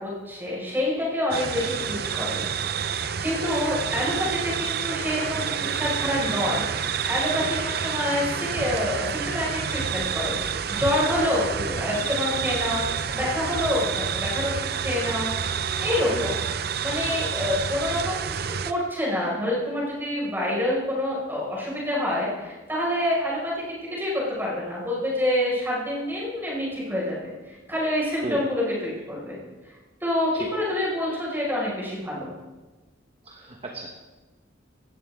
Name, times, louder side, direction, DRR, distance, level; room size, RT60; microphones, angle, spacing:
voice 1, 0.0-2.4 2.8-11.5 11.8-16.5 16.8-29.4 29.6-29.7 30.0-32.3, left 1 dB, 10° right, -5 dB, 5.4 m, -27 dB
sound 1, 1.3-18.7, right 7 dB, 50° right, 0.6 m, -29 dB
voice 2, 33.2-33.9, right 1 dB, 30° right, 1 dB, 1.1 m, -34 dB
17.0 x 15.0 x 3.7 m, 1.2 s
head